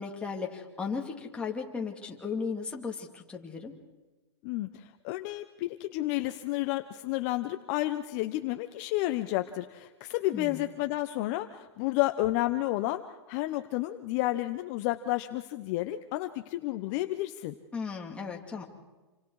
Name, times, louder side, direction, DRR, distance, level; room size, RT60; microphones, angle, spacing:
voice 1, 0.0-3.7 10.3-10.6 17.7-18.6, left 5 dB, 5° left, 0 dB, 2.6 m, -36 dB
voice 2, 4.4-17.6, left 16 dB, 40° left, 9 dB, 0.9 m, -31 dB
28.0 x 25.0 x 4.9 m, 1.2 s
hypercardioid pair, 150°, 14 cm